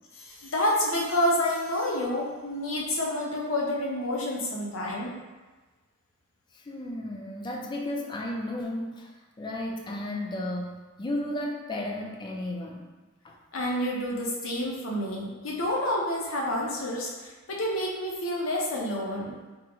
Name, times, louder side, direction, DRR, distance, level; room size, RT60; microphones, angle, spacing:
voice 1, 0.2-5.1 13.5-19.3, left 1 dB, 80° left, -3 dB, 0.7 m, -29 dB
voice 2, 6.5-9.1 9.4-12.9 13.2-13.4, left 1 dB, 20° left, 0 dB, 0.3 m, -33 dB
3.6 x 2.1 x 2.9 m, 1.2 s
head